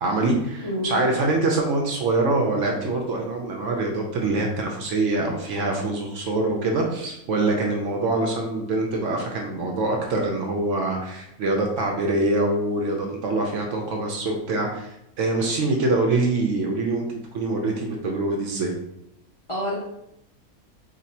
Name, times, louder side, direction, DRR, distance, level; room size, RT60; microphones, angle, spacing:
voice 1, 0.0-18.7, right 2 dB, 65° right, 1 dB, 0.8 m, -24 dB
voice 2, 0.6-1.1 19.5-19.7, equal, 45° left, -6 dB, 0.4 m, -28 dB
2.6 x 2.5 x 4.1 m, 0.82 s
omnidirectional pair, 1.6 m